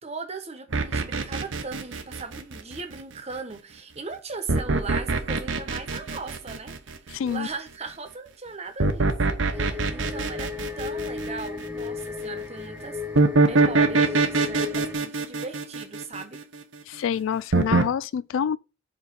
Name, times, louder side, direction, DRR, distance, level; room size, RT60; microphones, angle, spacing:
voice 1, 0.0-6.8 7.2-16.4, right 4 dB, 35° right, 1.1 m, -38 dB
sound 1, 0.7-2.9 4.5-7.1 8.8-11.6 13.2-16.6 17.5-17.9, right 3 dB, 85° right, 0.9 m, -23 dB
voice 2, 7.1-7.5 16.9-18.6, left 8 dB, 85° left, 0.3 m, -27 dB
sound 2, 9.5-14.9, left 4 dB, 5° right, 1.1 m, -35 dB
5.1 x 4.1 x 5.4 m
head